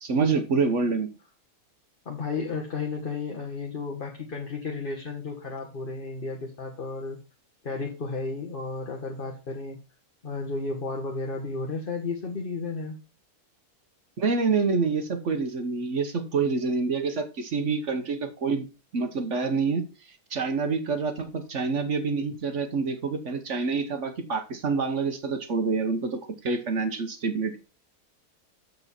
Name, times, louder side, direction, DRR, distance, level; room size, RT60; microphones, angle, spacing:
voice 1, 0.0-1.1 14.2-19.8 20.3-27.6, right 4 dB, 55° right, 7 dB, 1.2 m, -27 dB
voice 2, 2.0-7.2 7.6-9.8 10.2-13.0, left 4 dB, 35° left, 1 dB, 1.3 m, -33 dB
7.1 x 6.9 x 4.2 m, 0.32 s
omnidirectional pair, 1.7 m